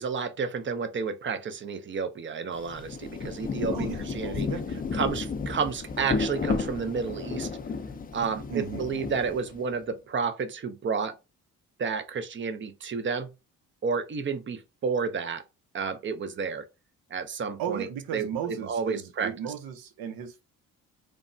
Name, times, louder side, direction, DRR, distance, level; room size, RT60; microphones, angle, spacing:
voice 1, 0.0-4.5 4.9-7.5 8.1-11.2 11.8-13.3 13.8-15.4 15.7-16.6 17.1-17.9 18.1-19.3, right 5 dB, 35° right, 0.5 m, -31 dB
Rain, 2.5-9.8, left 4 dB, 25° left, 0.4 m, -33 dB
voice 2, 3.7-5.0 8.5-8.8 17.6-20.4, right 8 dB, 75° right, 0.7 m, -36 dB
3.2 x 2.0 x 2.6 m
supercardioid pair, 60°, 36 cm